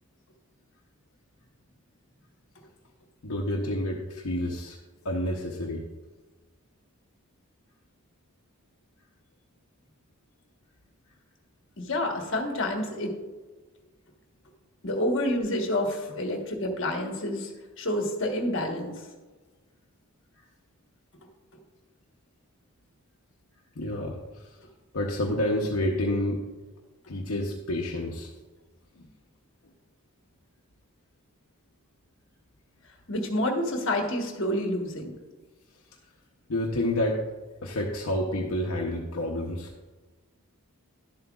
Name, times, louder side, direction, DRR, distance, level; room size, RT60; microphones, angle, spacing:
voice 1, 3.2-4.8 5.0-5.8 23.8-24.4 24.9-26.4 27.1-28.3 36.5-37.2 37.6-39.7, left 1 dB, 75° left, -2 dB, 0.8 m, -29 dB
voice 2, 11.8-13.2 14.8-17.5 17.8-19.0 33.1-35.2, left 1 dB, 55° left, 2 dB, 1.3 m, -28 dB
11.5 x 7.7 x 2.4 m, 1.2 s
head